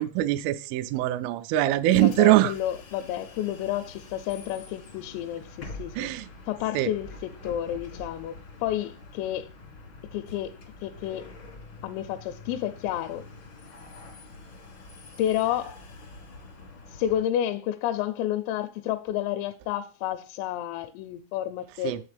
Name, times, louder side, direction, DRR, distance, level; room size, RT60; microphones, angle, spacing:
voice 1, 0.0-2.5 6.0-6.3 6.7-6.9 21.8-22.0, right 15 dB, 85° right, 2.9 m, -23 dB
Bus, 1.8-17.3, left 3 dB, 65° left, 1.2 m, -45 dB
voice 2, 2.0-6.1 6.5-8.3 8.6-9.5 10.1-11.3 11.8-13.3 15.2-15.8 16.9-21.9, left 11 dB, 85° left, 3.3 m, -30 dB
7.9 x 7.2 x 3.3 m
omnidirectional pair, 5.9 m